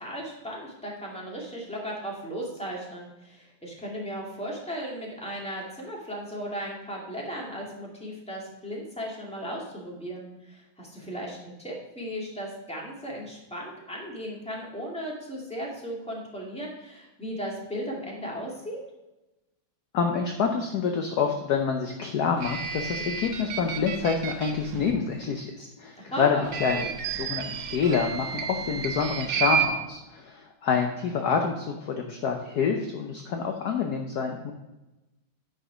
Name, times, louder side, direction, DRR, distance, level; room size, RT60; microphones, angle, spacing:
voice 1, 0.0-18.8 26.0-26.9, equal, 5° left, -3 dB, 2.1 m, -36 dB
voice 2, 19.9-34.5, left 6 dB, 60° left, 3 dB, 1.1 m, -27 dB
sound 1, 22.4-24.9 26.4-29.7, right 7 dB, 90° right, 1.7 m, -31 dB
9.4 x 5.2 x 5.0 m, 1.0 s
omnidirectional pair, 2.2 m